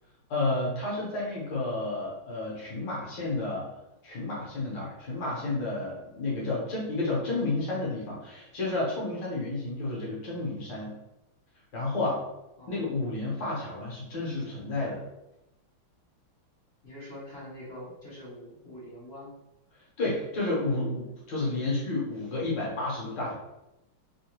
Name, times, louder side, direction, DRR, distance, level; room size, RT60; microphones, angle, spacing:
voice 1, 0.3-3.7 4.0-11.0 11.7-12.2 12.7-15.0 20.0-23.3, left 2 dB, 65° left, -5 dB, 1.6 m, -31 dB
voice 2, 12.6-12.9 16.8-19.3, left 1 dB, 45° left, -7 dB, 0.8 m, -44 dB
3.6 x 2.3 x 2.9 m, 0.94 s
omnidirectional pair, 2.2 m